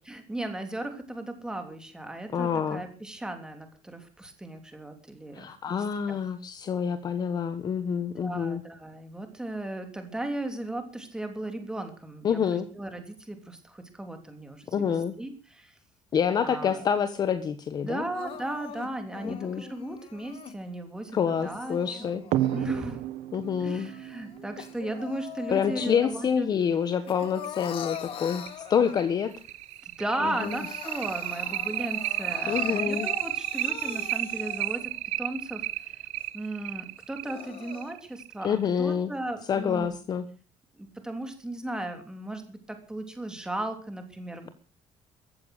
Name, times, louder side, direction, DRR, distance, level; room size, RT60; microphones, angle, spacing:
voice 1, 0.0-5.5 6.1-6.2 8.2-12.4 12.7-15.8 16.4-16.8 17.8-22.1 22.5-23.0 23.6-26.5 29.8-34.9 35.2-36.0 36.3-40.0 40.8-44.5, right 1 dB, 5° right, 6 dB, 3.2 m, -36 dB
voice 2, 2.3-2.8 5.3-8.6 12.2-12.7 14.7-15.1 16.1-18.0 19.2-19.6 21.1-22.2 23.3-23.9 25.5-28.4 28.7-29.3 30.2-30.6 32.5-33.1 38.4-39.1 39.5-40.2, left 7 dB, 35° left, 11 dB, 1.3 m, -27 dB
Crying sobbing, 18.1-20.6 21.2-23.0 23.4-26.3 26.7-29.3 29.8-29.9 30.1-35.0 35.5-35.6 36.2-36.3 37.0-37.9, left 10 dB, 50° left, 2.1 m, -42 dB
sound 1, 22.3-25.5 26.9-27.0 27.4-27.5 27.9-28.0 28.5-38.5, right 15 dB, 75° right, 1.0 m, -32 dB
15.0 x 14.0 x 6.6 m, 0.38 s
cardioid pair, 175°, 12 cm